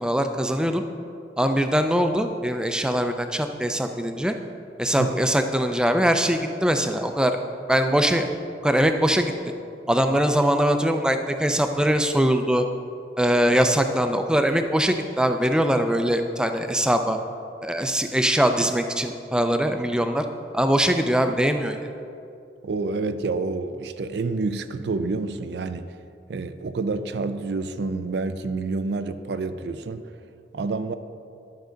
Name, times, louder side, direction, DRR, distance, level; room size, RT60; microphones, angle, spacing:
voice 1, 0.0-0.8 1.4-4.4 4.8-7.4 7.7-8.3 8.6-9.3 9.9-12.6 13.2-17.2 17.6-20.3 20.5-21.8, equal, 5° right, 7 dB, 0.3 m, -22 dB
voice 2, 22.6-26.0 26.3-30.1 30.5-30.9, right 3 dB, 75° right, 11 dB, 0.4 m, -28 dB
10.5 x 6.2 x 3.9 m, 2.6 s
head